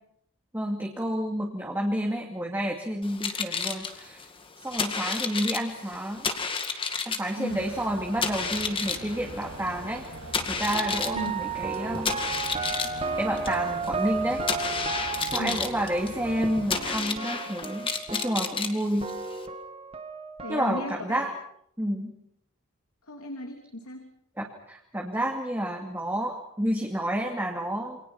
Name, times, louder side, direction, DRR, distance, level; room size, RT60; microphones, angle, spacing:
voice 1, 0.5-4.3 4.6-6.3 7.1-10.0 10.5-12.2 13.2-14.7 15.3-19.1 20.5-21.3 21.8-22.1 24.4-28.0, equal, 10° right, 0 dB, 2.5 m, -30 dB
sound 1, 3.0-19.5, left 5 dB, 25° left, 2.1 m, -32 dB
sound 2, 7.5-17.0, right 1 dB, 85° right, 6.6 m, -43 dB
sound 3, 10.7-18.7 19.0-20.8, right 4 dB, 25° right, 1.6 m, -33 dB
voice 2, 20.4-21.3 23.1-24.1, left 1 dB, 85° left, 3 dB, 3.3 m, -36 dB
28.5 x 25.5 x 5.9 m, 0.70 s
head